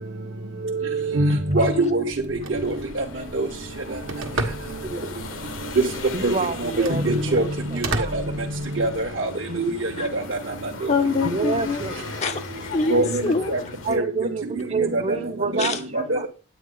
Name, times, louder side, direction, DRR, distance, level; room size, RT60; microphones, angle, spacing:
voice 1, 0.6-2.0 2.3-3.0 3.3-3.5 5.8-5.9 6.2-6.4 6.6-9.3 9.6-10.4 10.8-10.9 12.9-13.2 13.5-13.6 13.9-14.1 14.6-15.2 15.5-15.7 16.1-16.3, right 2 dB, 70° right, 1.2 m, -23 dB
Telephone, 2.1-9.1, right 2 dB, 90° right, 1.4 m, -34 dB
sound 1, 2.5-14.0, left 3 dB, 85° left, 1.3 m, -37 dB
voice 2, 4.8-5.2 6.1-8.2 9.5-9.7 9.9-10.0 11.2-12.0 13.8-16.3, right 4 dB, 35° right, 0.7 m, -29 dB
voice 3, 10.9-11.8 12.2-13.7 15.6-15.8, left 4 dB, 35° left, 0.5 m, -25 dB
9.2 x 9.1 x 3.9 m
head